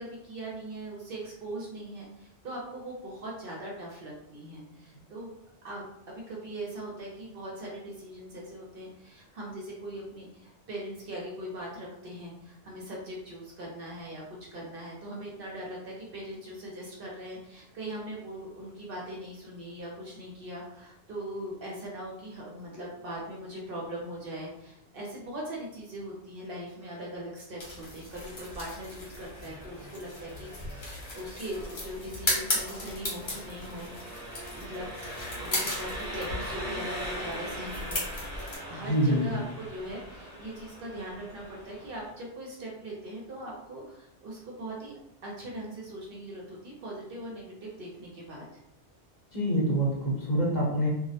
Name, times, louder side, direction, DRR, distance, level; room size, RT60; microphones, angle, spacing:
voice 1, 0.0-5.3 5.6-34.2 34.5-38.3 38.7-44.9 45.2-48.6, right 1 dB, 60° right, -3 dB, 0.7 m, -40 dB
sound 1, 27.6-38.6, left 2 dB, 65° left, 1.1 m, -36 dB
Engine, 28.1-42.1, equal, 15° right, 0.6 m, -42 dB
voice 2, 38.8-39.2 49.3-50.9, right 1 dB, 45° left, -6 dB, 0.8 m, -26 dB
2.3 x 2.0 x 2.7 m, 0.81 s
omnidirectional pair, 1.2 m